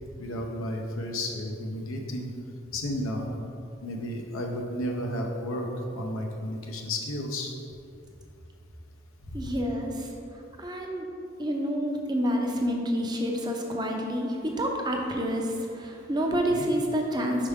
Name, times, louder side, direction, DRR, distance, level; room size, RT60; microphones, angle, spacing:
voice 1, 0.2-2.3 2.7-3.3 3.8-7.5 9.2-9.5 16.5-16.7, left 1 dB, 85° left, 1 dB, 0.6 m, -32 dB
voice 2, 9.3-10.1 10.6-11.1 11.4-17.5, equal, 20° right, 1 dB, 0.6 m, -28 dB
5.4 x 4.9 x 3.5 m, 2.6 s
head